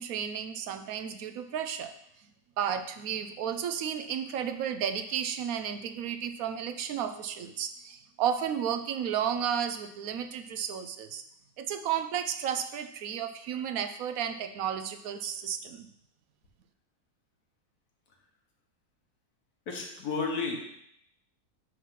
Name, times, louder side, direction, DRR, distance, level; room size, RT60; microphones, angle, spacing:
voice 1, 0.0-1.9 2.6-11.2 11.6-15.9, right 8 dB, 75° right, 9 dB, 1.0 m, -33 dB
voice 2, 19.7-20.5, left 4 dB, 80° left, 0 dB, 1.8 m, -32 dB
9.1 x 3.1 x 5.8 m, 0.74 s
omnidirectional pair, 1.6 m